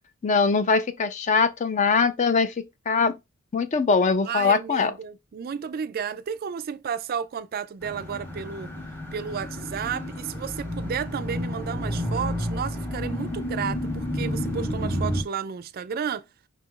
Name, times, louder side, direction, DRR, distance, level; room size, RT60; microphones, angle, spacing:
voice 1, 0.2-3.1 3.5-4.9, left 5 dB, 35° left, 0.4 m, -22 dB
voice 2, 4.2-8.7 9.1-16.3, right 7 dB, 45° right, 0.3 m, -32 dB
sound 1, 7.8-15.2, equal, 10° left, 0.8 m, -30 dB
5.3 x 2.4 x 3.6 m
head